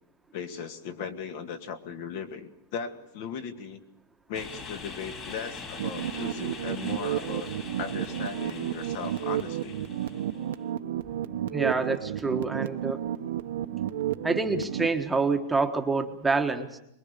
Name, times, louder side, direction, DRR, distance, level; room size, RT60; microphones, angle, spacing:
voice 1, 0.3-3.8 4.3-7.5 7.8-9.8, left 6 dB, 55° left, 7 dB, 2.2 m, -37 dB
sound 1, 4.3-10.5, left 4 dB, 30° left, 3.4 m, -43 dB
sound 2, 5.8-14.9, right 11 dB, 75° right, 1.1 m, -32 dB
voice 2, 11.5-13.0 14.2-16.8, right 3 dB, 5° right, 4 dB, 1.3 m, -27 dB
24.0 x 21.5 x 6.8 m, 0.79 s
supercardioid pair, 150°, 0 cm